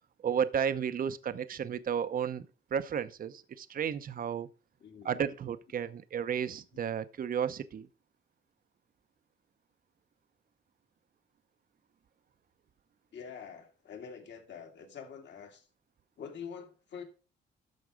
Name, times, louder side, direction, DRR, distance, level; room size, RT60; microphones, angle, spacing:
voice 1, 0.2-2.5 2.7-4.5 5.0-7.9, right 8 dB, 45° right, 0.7 m, -33 dB
voice 2, 4.8-5.2 13.1-15.7 16.2-17.0, left 7 dB, 65° left, 2.3 m, -45 dB
13.0 x 4.7 x 5.0 m
cardioid pair, 90°, 20 cm